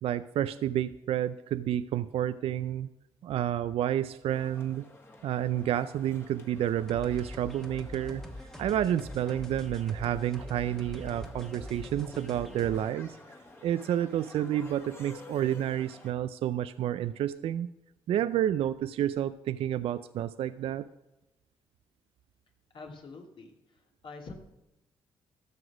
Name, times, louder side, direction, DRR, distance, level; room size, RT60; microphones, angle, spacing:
voice 1, 0.0-2.9 3.2-4.8 5.2-8.2 8.6-13.2 13.6-17.7 18.1-20.8, right 11 dB, 70° right, 13 dB, 0.4 m, -30 dB
sound 1, 4.3-16.1, left 1 dB, 20° left, 1.9 m, -52 dB
sound 2, 6.9-12.9, left 1 dB, 5° left, 1.3 m, -43 dB
voice 2, 22.7-24.4, left 3 dB, 55° left, 2 dB, 2.4 m, -46 dB
13.0 x 6.0 x 6.1 m, 0.95 s
cardioid pair, 75°, 10 cm